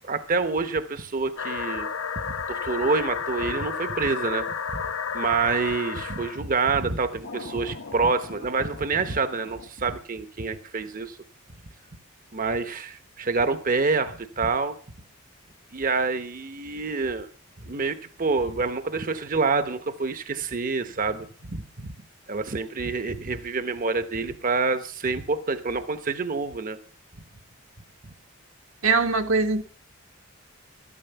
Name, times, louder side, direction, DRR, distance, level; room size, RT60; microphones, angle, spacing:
voice 1, 0.0-1.9 2.2-4.5 5.1-11.2 12.3-14.8 15.7-17.3 17.6-21.6 22.3-26.8 28.0-28.1, right 4 dB, 40° right, 0.9 m, -27 dB
sound 1, 1.4-6.4 7.2-9.7, left 6 dB, 65° left, 1.0 m, -33 dB
voice 2, 28.8-29.6, right 4 dB, 75° right, 1.4 m, -21 dB
13.5 x 12.5 x 6.9 m
head